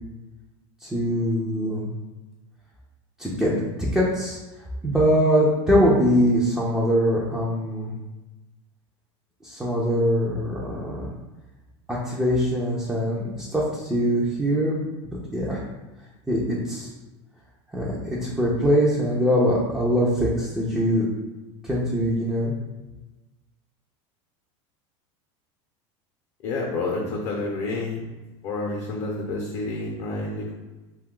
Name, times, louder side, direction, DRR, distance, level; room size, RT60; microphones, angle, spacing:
voice 1, 0.8-1.9 3.2-4.4 4.8-7.9 9.4-11.1 11.9-14.8 15.3-15.6 16.3-16.9 17.7-21.1 21.6-22.5, equal, 5° right, -6 dB, 0.5 m, -22 dB
voice 2, 26.4-28.0 28.4-30.5, left 2 dB, 50° left, -2 dB, 0.7 m, -29 dB
2.6 x 2.3 x 3.7 m, 1.1 s
supercardioid pair, 130°, 15 cm